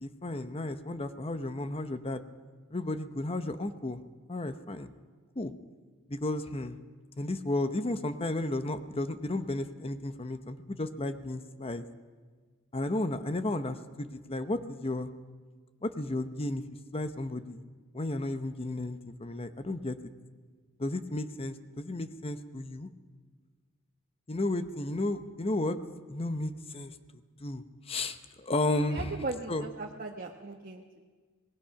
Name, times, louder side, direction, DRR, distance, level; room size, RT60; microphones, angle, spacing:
voice 1, 0.0-2.2 2.7-4.0 4.3-4.9 5.4-5.5 6.1-6.8 7.2-11.9 12.7-15.1 15.8-16.6 16.9-17.6 17.9-20.0 20.8-22.9 24.3-25.8 26.1-26.9 27.4-29.1 29.5-29.7, left 2 dB, 30° left, 10 dB, 0.8 m, -33 dB
voice 2, 28.8-31.0, right 3 dB, 45° right, 2 dB, 1.2 m, -38 dB
25.0 x 19.5 x 5.8 m, 1.5 s
head